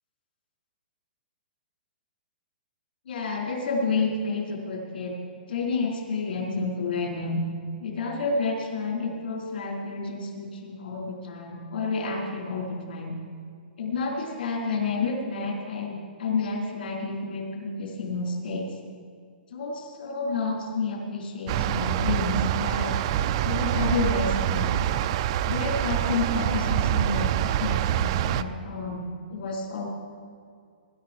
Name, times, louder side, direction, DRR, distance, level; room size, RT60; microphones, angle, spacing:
voice 1, 3.1-5.2 5.5-7.4 7.8-13.2 13.8-18.7 19.5-22.9 23.4-24.8 25.4-27.3 27.6-29.9, left 3 dB, 75° left, -1 dB, 4.2 m, -30 dB
sound 1, 21.5-28.4, right 11 dB, 30° right, 0.4 m, -25 dB
20.5 x 11.0 x 4.5 m, 2.2 s
hypercardioid pair, 170°, 6 cm